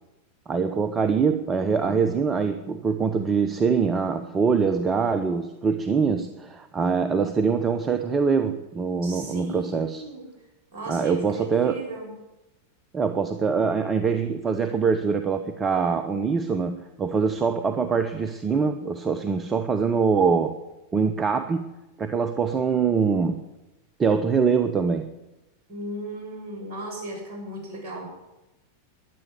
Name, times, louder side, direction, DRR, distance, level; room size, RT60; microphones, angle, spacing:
voice 1, 0.5-10.0 10.9-11.8 12.9-20.6 20.9-21.7 22.0-23.4 24.0-25.1, right 5 dB, 20° right, 9 dB, 0.9 m, -24 dB
voice 2, 9.0-10.3 10.7-12.1 25.7-28.1, right 1 dB, 45° right, 1 dB, 7.0 m, -36 dB
12.0 x 10.5 x 9.8 m, 0.99 s
figure-of-eight pair, 90°, 0 cm